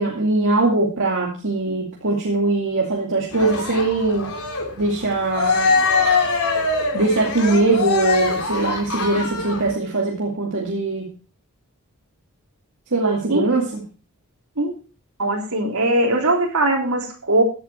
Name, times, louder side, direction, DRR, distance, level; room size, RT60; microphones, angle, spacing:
voice 1, 0.0-4.3 4.8-5.8 6.9-11.1 12.9-13.8, right 2 dB, 60° right, -1 dB, 2.4 m, -21 dB
Cheering, 3.3-9.7, left 4 dB, 90° left, 3.4 m, -23 dB
voice 2, 15.2-17.4, right 2 dB, 80° right, 1 dB, 3.6 m, -20 dB
15.5 x 8.1 x 4.5 m, 0.36 s
head